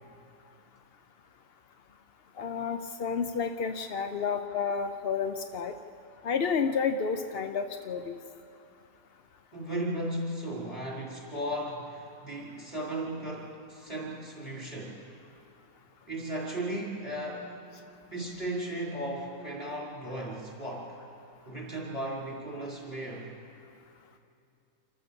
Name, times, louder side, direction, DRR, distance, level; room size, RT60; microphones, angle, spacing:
voice 1, 2.4-5.7 6.2-8.2, left 6 dB, 60° left, 7 dB, 0.6 m, -30 dB
voice 2, 9.5-15.0 16.1-17.5 18.1-20.9 21.4-23.3, right 1 dB, 20° left, -4 dB, 4.7 m, -36 dB
27.0 x 14.0 x 7.0 m, 2.7 s
omnidirectional pair, 1.8 m